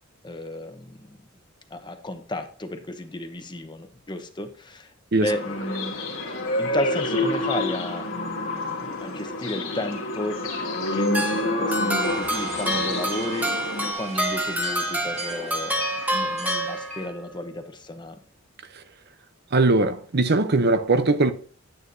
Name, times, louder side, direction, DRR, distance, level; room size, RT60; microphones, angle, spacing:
voice 1, 0.2-1.2 1.7-4.9 5.2-5.9 6.6-10.4 10.9-13.7 13.9-18.2, left 1 dB, 25° left, 1.0 m, -33 dB
sound 1, 5.3-13.9, left 2 dB, 70° left, 2.1 m, -28 dB
sound 2, 11.1-17.3, right 1 dB, 10° right, 1.1 m, -28 dB
sound 3, 12.0-17.1, right 2 dB, 35° right, 2.1 m, -37 dB
voice 2, 19.5-21.3, right 3 dB, 55° right, 0.7 m, -20 dB
9.4 x 9.2 x 2.7 m
head